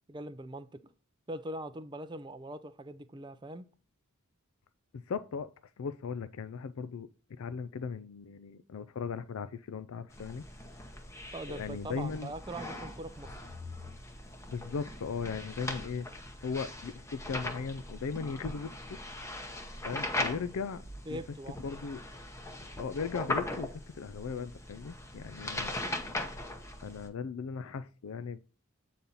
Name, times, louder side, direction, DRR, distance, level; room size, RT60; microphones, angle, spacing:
voice 1, 0.1-0.8 1.3-3.7 11.3-13.3 21.1-21.6, right 1 dB, 20° right, 0.4 m, -42 dB
voice 2, 4.9-5.5 5.8-10.5 11.5-12.3 14.5-16.1 16.4-19.0 19.8-20.8 21.1-21.2 21.6-22.0 22.8-25.7 26.8-28.4, left 5 dB, 70° left, 0.4 m, -38 dB
sound 1, 10.1-27.1, left 1 dB, 15° left, 0.8 m, -40 dB
8.4 x 4.1 x 3.9 m
head